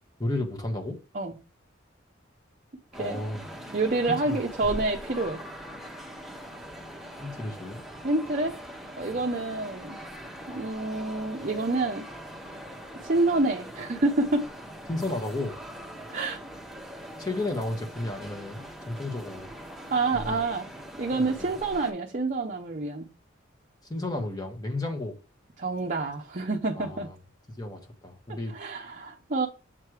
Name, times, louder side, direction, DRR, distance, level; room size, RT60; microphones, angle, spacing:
voice 1, 0.2-1.0 3.0-3.4 4.1-4.8 7.2-7.8 9.1-9.2 14.9-15.5 17.2-19.5 20.1-20.4 21.1-21.5 23.9-25.2 26.7-27.1 27.6-28.6, left 2 dB, 20° left, 1.2 m, -33 dB
sound 1, 2.9-21.9, equal, ahead, 1.1 m, -42 dB
voice 2, 3.7-5.4 8.0-8.6 9.0-10.0 10.5-12.0 13.0-14.5 16.1-16.4 19.9-20.7 21.0-23.1 25.6-27.1 28.5-29.5, right 2 dB, 40° right, 0.7 m, -27 dB
7.4 x 3.2 x 4.7 m
head